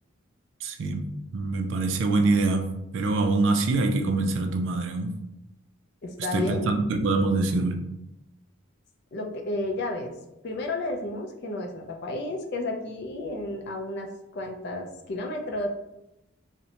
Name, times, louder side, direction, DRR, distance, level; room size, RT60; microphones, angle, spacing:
voice 1, 0.6-5.1 6.3-7.8, right 3 dB, 60° right, 5 dB, 0.3 m, -25 dB
voice 2, 6.0-6.7 9.1-10.1 10.4-15.7, left 2 dB, 50° left, 2 dB, 0.4 m, -32 dB
2.7 x 2.1 x 2.8 m, 0.87 s
head